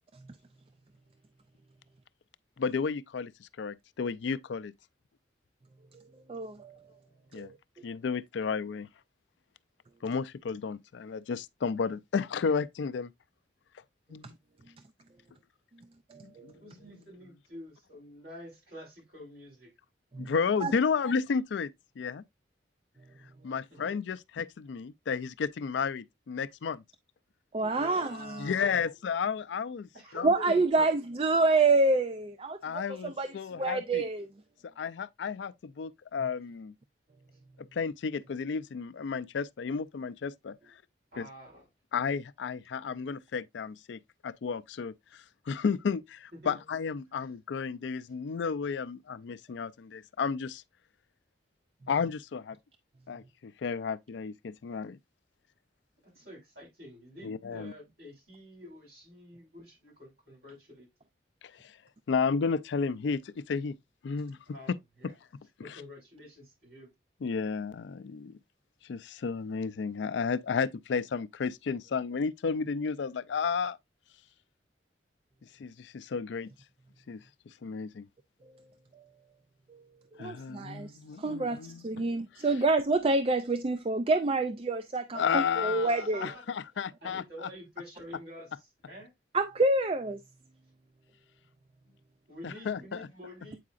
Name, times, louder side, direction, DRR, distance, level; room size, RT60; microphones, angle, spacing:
voice 1, 2.6-4.7 7.3-7.5 7.8-8.9 10.0-13.1 14.1-14.3 16.2-16.5 20.2-21.7 22.0-22.2 23.4-26.8 28.4-29.9 30.1-30.3 32.6-34.0 34.8-36.7 37.7-40.6 41.2-41.3 41.9-44.9 45.5-50.6 51.9-52.6 53.1-55.0 57.2-57.7 61.6-61.7 62.1-63.8 64.0-64.4 67.2-68.4 68.9-73.8 75.6-76.5 77.1-77.2 77.6-78.1 80.2-81.9 85.1-87.2 92.4-93.1, left 5 dB, 75° left, 0.4 m, -32 dB
voice 2, 6.3-6.8 7.4-7.6 16.1-16.5 20.1-20.3 20.6-20.7 27.5-28.4 30.2-33.3 33.6-34.3 79.7-79.8 80.2-86.3 89.3-90.2, right 3 dB, 30° right, 0.4 m, -27 dB
voice 3, 16.6-19.7 23.7-24.0 27.7-29.0 29.9-30.6 40.6-40.7 41.1-41.7 46.4-46.6 56.0-60.9 64.5-65.2 65.6-66.9 86.1-86.4 87.0-89.1 92.3-93.6, equal, 60° right, 5.3 m, -48 dB
8.4 x 4.8 x 2.4 m
head